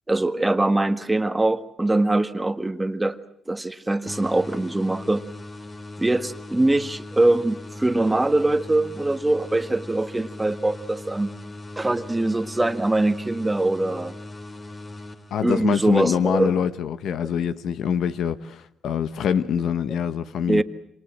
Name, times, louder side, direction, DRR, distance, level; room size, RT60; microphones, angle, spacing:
voice 1, 0.1-3.2 3.5-5.3 6.0-11.4 11.8-14.1 15.4-16.5 20.5-20.6, right 2 dB, 15° right, 1.5 m, -22 dB
sound 1, 4.1-15.8, left 2 dB, 30° left, 2.8 m, -39 dB
voice 2, 15.3-20.6, left 8 dB, 70° left, 1.3 m, -24 dB
28.0 x 26.5 x 7.6 m
cardioid pair, 90°, 0 cm